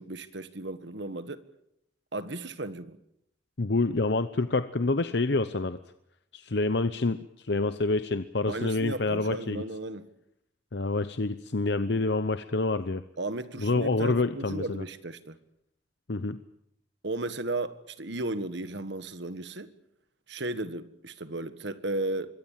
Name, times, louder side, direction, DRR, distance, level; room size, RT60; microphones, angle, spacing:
voice 1, 0.0-1.4 2.1-3.0 8.5-10.1 13.2-15.4 17.0-19.7 20.3-22.3, right 2 dB, 70° right, 1.6 m, -35 dB
voice 2, 3.6-5.8 6.3-9.6 10.7-13.0 13.6-14.8 16.1-16.4, left 3 dB, 65° left, 0.9 m, -27 dB
25.5 x 22.5 x 7.5 m
head